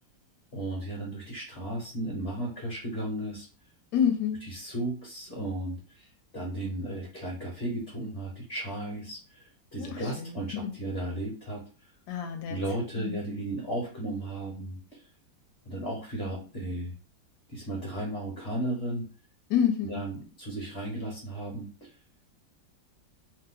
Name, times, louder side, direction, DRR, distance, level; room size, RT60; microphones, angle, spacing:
voice 1, 0.5-3.5 4.4-11.6 12.5-15.0 15.6-16.9 17.5-19.1 19.8-21.9, right 1 dB, 40° left, -2 dB, 1.0 m, -35 dB
voice 2, 3.9-4.5 9.8-10.7 12.1-12.6 13.0-13.2 19.5-20.0, left 8 dB, 70° left, 5 dB, 1.2 m, -28 dB
3.0 x 2.0 x 3.5 m, 0.37 s
omnidirectional pair, 1.9 m